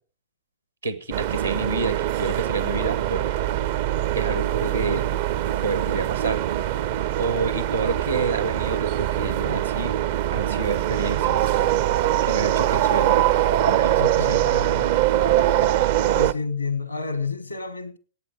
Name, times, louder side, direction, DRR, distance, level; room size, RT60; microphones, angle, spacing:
voice 1, 0.8-3.2 4.1-5.1 5.6-6.4 7.2-9.9 10.3-11.5 12.2-13.3 13.6-14.4, right 3 dB, 80° right, 1.6 m, -29 dB
sound 1, 1.1-16.3, right 12 dB, 55° right, 0.6 m, -23 dB
voice 2, 14.0-14.9 16.1-18.0, left 4 dB, 85° left, 1.3 m, -30 dB
18.0 x 8.9 x 4.9 m
figure-of-eight pair, 90°, 0 cm